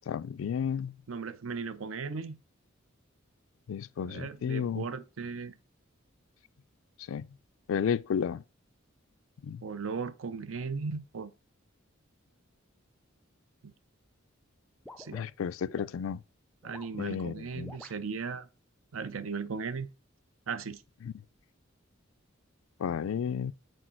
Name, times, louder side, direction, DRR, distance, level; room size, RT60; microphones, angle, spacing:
voice 1, 0.1-0.9 3.7-4.8 7.1-7.3 7.7-8.4 9.4-9.6 15.1-16.2 17.0-17.7 21.0-21.1 22.8-23.5, left 7 dB, 85° left, 0.4 m, -32 dB
voice 2, 1.1-2.4 4.0-5.5 9.6-11.3 13.6-13.7 15.0-15.2 16.6-18.5 18.9-19.9 20.5-20.8, right 5 dB, 85° right, 0.6 m, -37 dB
sound 1, 14.9-15.9 16.6-17.0 17.6-18.0, left 1 dB, 5° left, 0.4 m, -49 dB
6.3 x 4.7 x 4.4 m
head